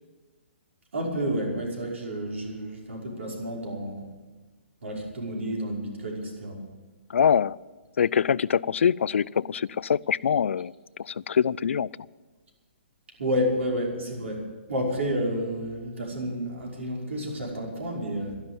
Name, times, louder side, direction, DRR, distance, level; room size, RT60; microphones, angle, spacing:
voice 1, 0.9-4.0 4.8-6.6 13.2-14.4 14.7-18.4, equal, 85° right, -1 dB, 5.5 m, -30 dB
voice 2, 7.1-7.6 8.0-10.7 11.0-11.9, left 7 dB, 85° left, 21 dB, 0.4 m, -24 dB
12.0 x 11.5 x 9.1 m, 1.3 s
hypercardioid pair, 165°, 7 cm